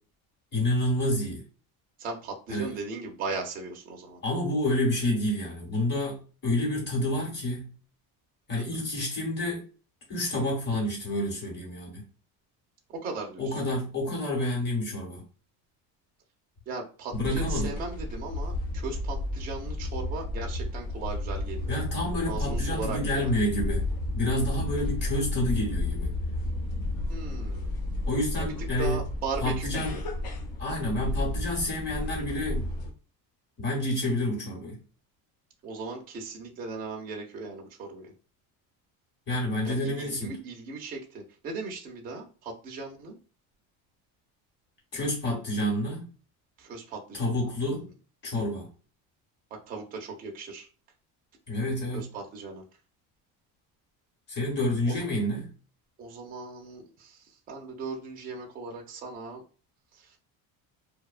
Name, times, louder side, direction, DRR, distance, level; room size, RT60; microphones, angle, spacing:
voice 1, 0.5-1.4 2.5-2.7 4.2-7.7 8.5-9.6 10.1-12.1 13.4-15.2 17.1-17.7 21.7-23.8 24.1-26.1 28.0-29.0 29.4-29.9 30.6-32.7 33.6-34.8 39.3-40.4 44.9-46.1 47.1-47.9 48.2-48.7 51.5-52.1 54.3-55.5, left 1 dB, 25° left, -2 dB, 1.0 m, -29 dB
voice 2, 2.0-4.2 8.6-8.8 12.9-13.6 16.7-21.9 22.3-23.4 27.1-27.7 28.4-28.5 28.8-30.0 35.6-38.1 39.6-43.2 46.6-47.3 47.7-47.9 49.5-50.7 51.9-52.6 54.8-55.0 56.0-59.4 59.9-60.2, right 4 dB, 25° right, 1 dB, 0.4 m, -38 dB
sound 1, 17.1-32.9, left 2 dB, 60° left, 0.7 m, -32 dB
2.7 x 2.0 x 2.3 m, 0.37 s
cardioid pair, 175°, 40 cm